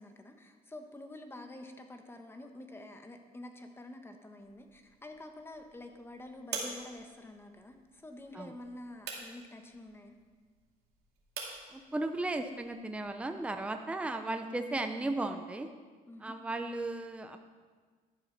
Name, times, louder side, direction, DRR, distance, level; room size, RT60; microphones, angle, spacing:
voice 1, 0.0-10.1 16.1-16.3, left 1 dB, 15° left, 5 dB, 1.2 m, -48 dB
sound 1, 4.4-13.6, right 5 dB, 70° right, 2.5 m, -47 dB
voice 2, 11.7-15.7 16.2-17.4, right 2 dB, 5° right, 6 dB, 0.6 m, -35 dB
11.5 x 7.2 x 5.9 m, 1.5 s
cardioid pair, 110°, 17 cm